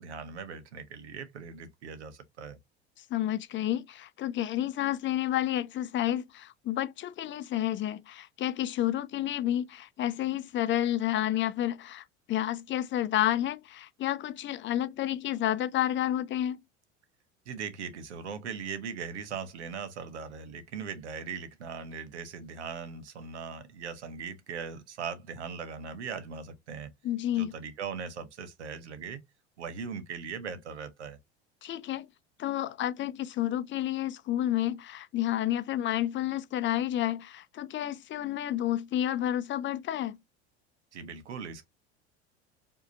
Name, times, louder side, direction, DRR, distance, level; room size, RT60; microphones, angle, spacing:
voice 1, 0.0-2.6 17.5-26.9 27.3-29.2 29.6-31.2 40.9-41.7, right 6 dB, 85° right, 0.9 m, -39 dB
voice 2, 3.1-16.6 27.0-27.5 31.6-32.1 32.4-40.2, left 12 dB, 35° left, 0.6 m, -30 dB
4.7 x 2.9 x 2.7 m
hypercardioid pair, 80°, 34 cm